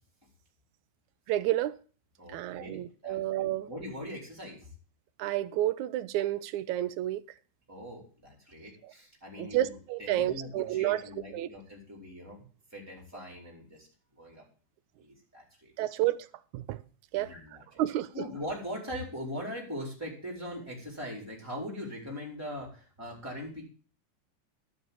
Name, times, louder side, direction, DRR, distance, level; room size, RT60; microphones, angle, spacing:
voice 1, 1.3-1.8 2.3-3.7 5.2-7.2 9.4-11.0 11.3-11.5 15.8-16.3 16.5-16.8 17.1-17.3 17.8-18.1, right 14 dB, 80° right, 1.9 m, -30 dB
voice 2, 2.2-4.7 7.7-12.4 12.7-13.9 14.2-14.5 15.0-15.7 17.1-17.8 18.1-23.6, left 1 dB, 5° right, 4.3 m, -41 dB
12.5 x 6.0 x 7.2 m
omnidirectional pair, 3.6 m